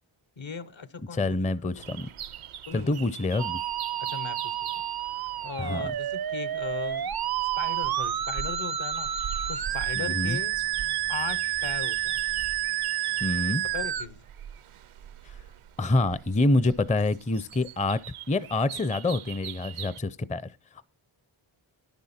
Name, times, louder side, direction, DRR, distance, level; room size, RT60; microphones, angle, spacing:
voice 1, 0.4-1.4 2.7-3.0 4.0-4.8 5.2-7.1 7.6-9.1 9.5-10.6 11.1-12.2 13.7-14.2, left 5 dB, 65° left, 1.1 m, -38 dB
voice 2, 1.1-2.1 2.7-3.6 5.6-5.8 10.0-10.4 13.2-13.6 15.2-15.3 15.8-18.0 18.3-20.5, left 2 dB, 15° left, 0.5 m, -26 dB
sound 1, 1.7-20.0, right 9 dB, 85° right, 0.7 m, -43 dB
Musical instrument, 3.4-14.1, right 12 dB, 50° right, 0.5 m, -30 dB
11.0 x 10.5 x 4.2 m
wide cardioid pair, 100°, 49 cm